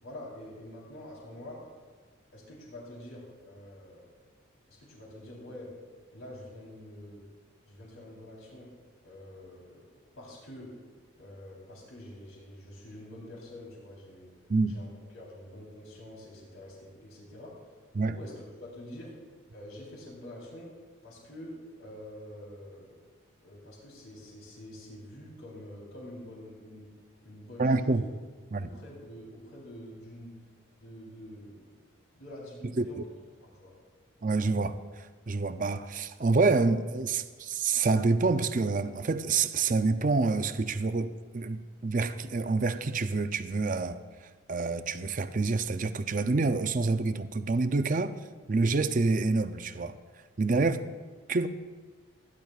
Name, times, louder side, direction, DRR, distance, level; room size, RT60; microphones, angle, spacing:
voice 1, 0.0-1.6 2.3-4.1 4.7-5.7 6.1-7.2 7.7-8.7 9.0-9.9 10.1-10.7 11.2-14.3 14.7-17.6 18.1-19.1 19.5-20.7 21.0-23.0 23.4-26.9 27.2-28.0 28.6-30.4 30.8-31.8 32.1-33.0 33.4-33.8, left 1 dB, 85° left, -4 dB, 3.7 m, -46 dB
voice 2, 27.6-28.0 28.5-28.7 32.8-33.0 34.2-44.0 44.5-48.1 48.5-50.0 50.4-50.8 51.3-51.5, right 3 dB, 40° right, 10 dB, 0.5 m, -27 dB
28.5 x 10.5 x 2.4 m, 1.4 s
head